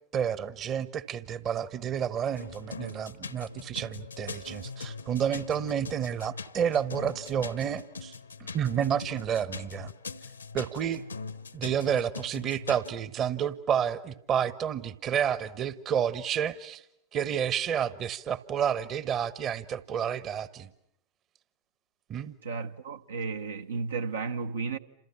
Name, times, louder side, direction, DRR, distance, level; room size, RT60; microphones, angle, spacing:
voice 1, 0.1-8.1 8.5-9.9 10.5-11.0 11.5-16.8 17.1-20.7 22.1-22.3, right 8 dB, 30° right, 1.2 m, -30 dB
sound 1, 2.4-12.9, left 4 dB, 80° left, 1.2 m, -42 dB
voice 2, 22.4-24.8, right 4 dB, 70° right, 1.2 m, -33 dB
29.5 x 27.5 x 7.1 m
figure-of-eight pair, 90°, 0 cm